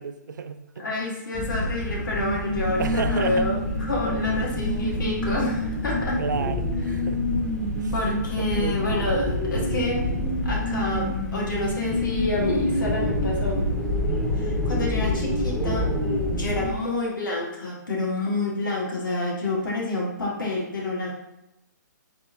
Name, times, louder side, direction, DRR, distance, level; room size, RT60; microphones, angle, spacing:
voice 1, 0.0-1.0 2.8-3.5 4.4-4.6 6.2-7.2 7.7-7.9 8.4-8.8, right 5 dB, 70° right, 9 dB, 0.4 m, -32 dB
voice 2, 0.8-6.2 7.9-10.1 10.4-13.7 14.3-15.9 16.3-21.1, left 2 dB, 85° left, -3 dB, 1.4 m, -28 dB
sound 1, 1.3-16.7, left 1 dB, ahead, 0.3 m, -26 dB
4.3 x 2.6 x 3.3 m, 0.86 s
hypercardioid pair, 155°, 10 cm